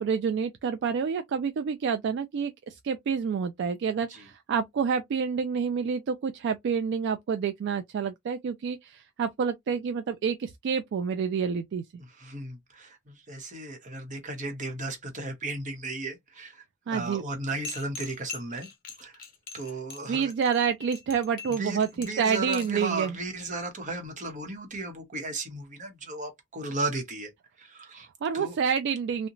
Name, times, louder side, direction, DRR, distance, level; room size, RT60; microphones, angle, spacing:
voice 1, 0.0-11.8 16.9-17.2 20.1-23.2 28.2-29.3, right 6 dB, 60° right, 0.3 m, -28 dB
voice 2, 12.0-16.6 16.9-18.7 19.0-19.2 19.5-20.3 21.5-27.3 27.6-28.1 28.3-28.6, right 2 dB, 40° right, 0.9 m, -35 dB
sound 1, 17.6-22.8, left 4 dB, 45° left, 0.7 m, -42 dB
2.8 x 2.1 x 2.5 m
head